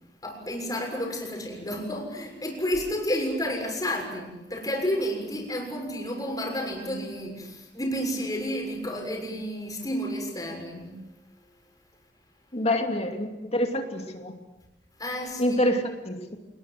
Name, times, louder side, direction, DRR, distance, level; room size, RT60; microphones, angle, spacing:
voice 1, 0.2-11.0 15.0-15.6, equal, 20° left, 1 dB, 6.8 m, -31 dB
voice 2, 12.5-14.3 15.4-16.4, left 1 dB, 35° left, 4 dB, 2.7 m, -26 dB
28.0 x 20.5 x 7.8 m, 0.99 s
head